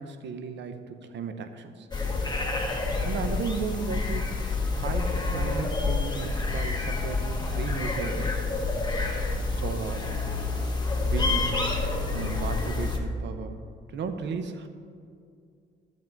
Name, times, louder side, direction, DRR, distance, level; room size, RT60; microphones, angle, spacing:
voice 1, 0.0-1.9 3.0-4.4 4.8-8.3 9.1-9.2 9.5-10.2 11.0-11.6 12.1-14.7, right 5 dB, 65° right, 8 dB, 0.9 m, -35 dB
sound 1, 1.9-13.0, left 3 dB, 20° left, 1.6 m, -28 dB
12.0 x 7.2 x 4.6 m, 2.3 s
cardioid pair, 90°, 20 cm